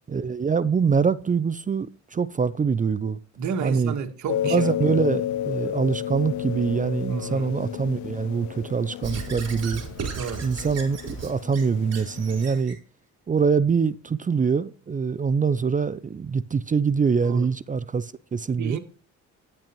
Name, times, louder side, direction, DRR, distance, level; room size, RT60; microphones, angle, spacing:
voice 1, 0.1-3.2 3.6-3.9 4.4-9.8 10.4-12.8 13.3-18.8, right 5 dB, 25° right, 0.5 m, -24 dB
voice 2, 3.4-5.0 7.1-7.5 10.1-10.5 17.3-17.5 18.6-18.8, right 6 dB, 70° right, 1.9 m, -32 dB
sound 1, 4.3-12.6, left 11 dB, 70° left, 0.5 m, -32 dB
Squeak / Writing, 9.0-12.8, right 5 dB, 55° right, 4.0 m, -36 dB
12.0 x 10.5 x 3.0 m
cardioid pair, 90°, 30 cm